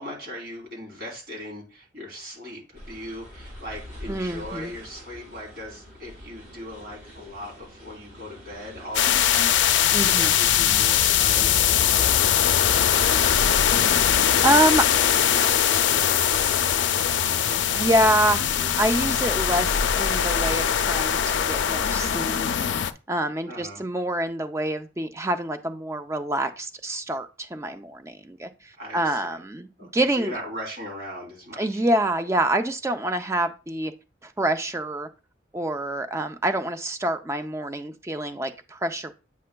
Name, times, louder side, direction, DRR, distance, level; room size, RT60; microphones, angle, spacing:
voice 1, 0.0-13.7 15.1-18.0 18.5-18.8 23.5-23.8 28.8-29.4 29.8-31.8, equal, 65° right, -1 dB, 3.5 m, -39 dB
sound 1, 2.7-11.3, equal, 50° right, 3.8 m, -44 dB
voice 2, 4.1-4.7 9.9-10.3 14.4-14.8 17.7-22.5 23.1-30.3 31.6-33.9 34.2-35.1 35.5-39.1, right 1 dB, 15° right, 7 dB, 0.4 m, -26 dB
sound 2, 8.9-22.9, left 9 dB, 85° left, 0.4 m, -21 dB
8.4 x 5.5 x 2.2 m, 0.32 s
head